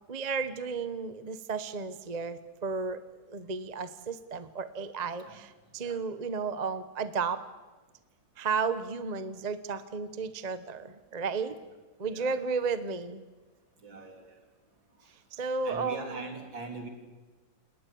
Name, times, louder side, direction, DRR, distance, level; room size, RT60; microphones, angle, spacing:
voice 1, 0.1-3.0 3.3-7.4 8.4-11.6 12.0-13.2 15.3-16.2, right 5 dB, 30° right, 12 dB, 0.9 m, -33 dB
voice 2, 12.1-12.4 13.8-14.4 15.0-16.9, right 3 dB, 65° right, 4 dB, 4.3 m, -43 dB
29.0 x 19.0 x 8.6 m, 1.3 s
omnidirectional pair, 2.2 m